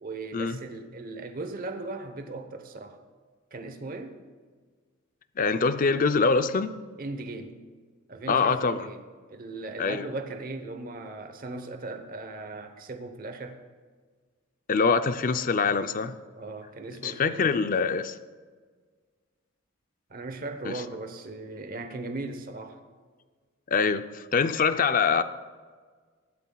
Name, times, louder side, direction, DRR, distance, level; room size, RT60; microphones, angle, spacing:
voice 1, 0.0-3.0 3.5-4.2 7.0-7.6 8.1-13.6 16.4-17.6 20.1-22.8, right 2 dB, 45° right, 0.9 m, -38 dB
voice 2, 5.4-6.7 8.3-8.9 9.8-10.1 14.7-16.2 17.0-18.2 20.6-20.7 23.7-25.2, left 5 dB, 40° left, 0.5 m, -24 dB
19.5 x 12.0 x 2.3 m
head